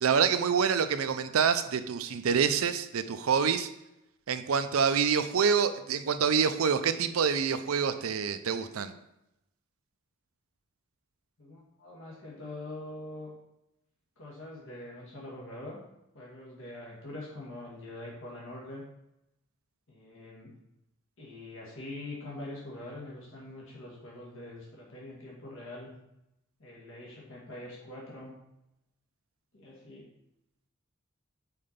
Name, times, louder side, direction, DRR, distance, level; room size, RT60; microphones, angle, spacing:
voice 1, 0.0-3.7 4.3-8.9, right 6 dB, 85° right, 10 dB, 0.5 m, -26 dB
voice 2, 11.4-13.3 14.2-15.8 16.1-18.8 19.9-20.5 21.2-25.9 26.6-28.4 29.5-30.1, left 1 dB, 70° left, -4 dB, 1.7 m, -44 dB
5.7 x 4.3 x 5.1 m, 0.85 s
head